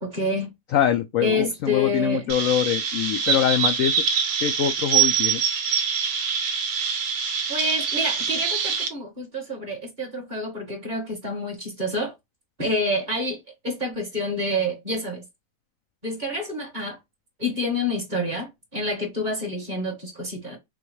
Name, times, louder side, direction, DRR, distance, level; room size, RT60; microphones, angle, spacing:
voice 1, 0.0-0.5 1.2-2.2 7.5-12.1 12.6-13.4 13.6-15.2 16.0-17.0 17.4-20.6, left 1 dB, 25° right, 1.6 m, -28 dB
voice 2, 0.7-4.0 4.4-5.4, left 10 dB, 80° left, 0.7 m, -24 dB
Chirp tweet, 2.3-8.9, right 7 dB, 75° right, 1.5 m, -24 dB
6.2 x 2.3 x 3.1 m
omnidirectional pair, 1.9 m